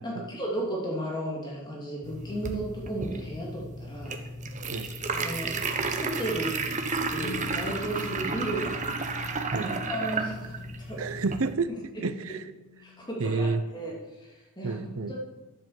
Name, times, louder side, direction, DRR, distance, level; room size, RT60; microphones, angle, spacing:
voice 1, 0.0-4.2 5.1-5.6 5.9-6.5 7.1-8.8 9.6-11.0 12.8-13.9 14.2-14.8 15.1-15.2, right 1 dB, 20° left, -4 dB, 2.8 m, -34 dB
sound 1, 2.0-11.5, right 3 dB, 35° right, 1.1 m, -32 dB
Bass guitar, 7.2-13.4, left 9 dB, 85° left, 4.0 m, -49 dB
voice 2, 11.0-11.7 12.0-12.4 13.2-13.6 14.6-15.2, right 4 dB, 70° right, 13 dB, 0.7 m, -29 dB
11.0 x 7.6 x 7.4 m, 1.1 s
head